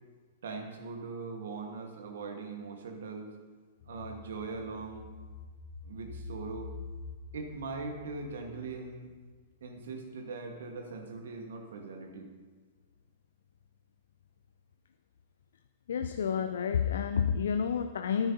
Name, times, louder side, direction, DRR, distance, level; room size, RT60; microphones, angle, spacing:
voice 1, 0.4-3.3 3.8-5.1 5.8-6.7 7.3-9.1 9.6-12.3, right 4 dB, 65° right, 4 dB, 1.5 m, -41 dB
sound 1, 3.8-9.4 9.8-9.9, left 3 dB, 50° left, 1.1 m, -47 dB
voice 2, 15.9-18.3, left 7 dB, 65° left, 9 dB, 0.4 m, -29 dB
13.0 x 9.9 x 2.8 m, 1.4 s
figure-of-eight pair, 100°, 0 cm